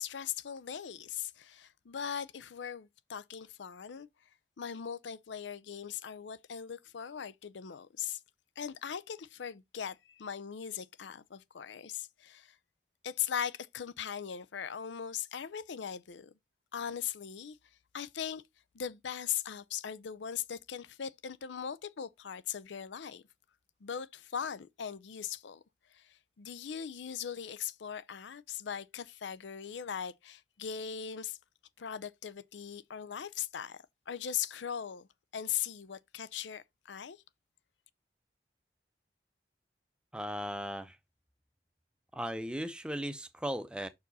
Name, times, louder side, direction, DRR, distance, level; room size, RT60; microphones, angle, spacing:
voice 1, 0.0-4.1 4.6-8.2 8.6-12.6 13.0-16.3 16.7-17.6 17.9-18.4 18.7-23.2 23.8-25.6 25.9-31.4 31.8-35.1 35.3-37.2, left 8 dB, 80° left, 0.5 m, -39 dB
voice 2, 40.1-41.0 42.1-43.9, equal, 5° right, 0.6 m, -37 dB
6.1 x 4.7 x 4.0 m
head